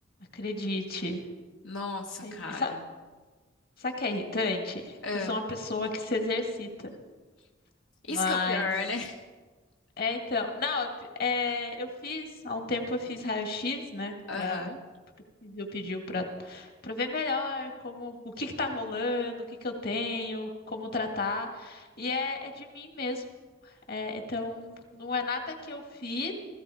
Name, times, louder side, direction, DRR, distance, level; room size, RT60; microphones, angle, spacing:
voice 1, 0.3-1.2 2.2-2.7 3.8-6.9 8.1-8.7 10.0-10.9 11.2-14.7 15.4-23.2 23.6-26.3, left 3 dB, 55° left, 4 dB, 2.1 m, -32 dB
voice 2, 1.6-2.8 5.0-5.4 8.1-9.2 14.3-14.8, left 3 dB, 85° left, 1 dB, 1.3 m, -34 dB
16.5 x 16.0 x 5.0 m, 1.3 s
head